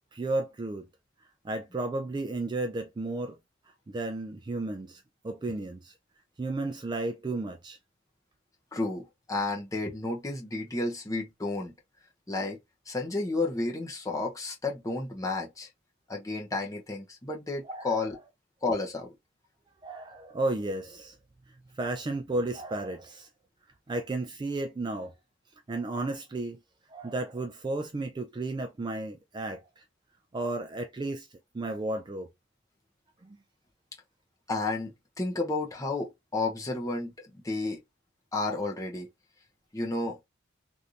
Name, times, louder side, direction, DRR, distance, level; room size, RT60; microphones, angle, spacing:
voice 1, 0.1-0.9 1.4-3.4 3.9-5.9 6.4-7.8 17.6-18.0 19.8-21.2 21.8-23.3 23.9-25.1 25.7-26.6 26.9-29.8 30.3-31.3 31.5-32.3 33.2-33.4, right 2 dB, 20° right, 0.3 m, -33 dB
voice 2, 8.7-11.7 12.3-12.6 12.9-15.7 16.1-18.2 18.6-19.1 34.5-37.8 38.3-39.1 39.7-40.2, left 2 dB, 15° left, 0.8 m, -32 dB
3.2 x 2.5 x 2.7 m
head